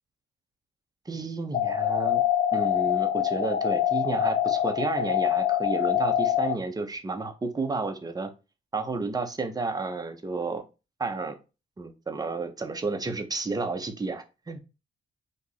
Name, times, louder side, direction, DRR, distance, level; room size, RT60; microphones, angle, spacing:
voice 1, 1.1-2.2 2.5-8.3 8.7-10.6 11.0-11.4 11.8-14.6, right 3 dB, 20° right, 5 dB, 0.7 m, -31 dB
sound 1, 1.5-6.5, left 10 dB, 45° left, 0.4 m, -25 dB
2.9 x 2.5 x 4.0 m, 0.29 s
cardioid pair, 90°, 20 cm